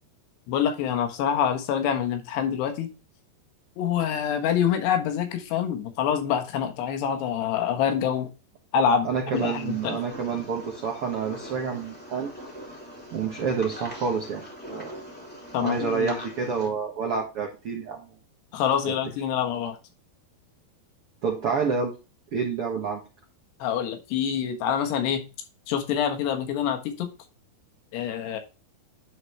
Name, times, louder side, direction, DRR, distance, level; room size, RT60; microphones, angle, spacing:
voice 1, 0.5-2.9 3.8-8.3 8.7-10.0 15.5-16.2 18.5-19.8 23.6-25.2 25.7-27.1 27.9-28.4, left 8 dB, 75° left, 6 dB, 3.4 m, -26 dB
voice 2, 9.0-12.3 13.1-14.9 15.6-18.1 18.9-19.0 21.2-21.9 22.3-23.0, right 5 dB, 75° right, 1 dB, 1.2 m, -28 dB
sound 1, 9.3-16.7, equal, 5° left, 1.9 m, -42 dB
11.0 x 4.8 x 3.2 m, 0.30 s
omnidirectional pair, 5.0 m